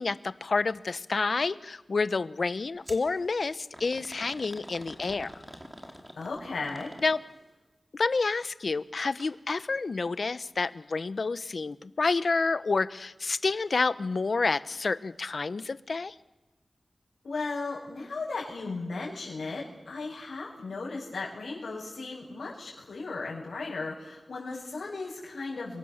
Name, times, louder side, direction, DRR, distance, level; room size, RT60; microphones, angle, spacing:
voice 1, 0.0-5.3 7.0-7.2 7.9-16.2, left 4 dB, 65° left, 14 dB, 0.9 m, -29 dB
sound 1, 2.9-3.1 3.7-7.4 9.0-9.3 9.7-9.8 10.6-10.7, equal, 10° right, 3.4 m, -46 dB
voice 2, 6.2-7.0 17.2-25.8, left 3 dB, 90° left, -7 dB, 7.2 m, -36 dB
29.5 x 24.0 x 7.2 m, 1.1 s
wide cardioid pair, 90°, 0 cm